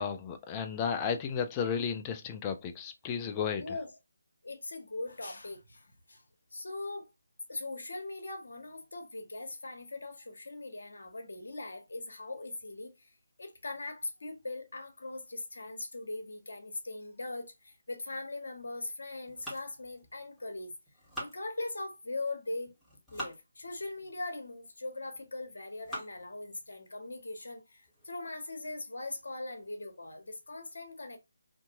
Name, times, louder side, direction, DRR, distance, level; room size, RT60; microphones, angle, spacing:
voice 1, 0.0-3.6, left 6 dB, 20° left, 0.4 m, -33 dB
voice 2, 3.6-3.9 4.4-6.2 6.5-7.1 7.5-13.1 13.4-20.7 21.2-22.7 23.1-31.2, left 2 dB, 60° left, 1.0 m, -40 dB
sound 1, 19.3-20.5 20.9-22.0 22.7-23.4 24.1-24.2 24.9-25.2 25.7-26.3 26.8-26.9 27.3-27.4 27.8-28.1, equal, ahead, 1.2 m, -44 dB
2.7 x 2.6 x 2.7 m
figure-of-eight pair, 150°, 0 cm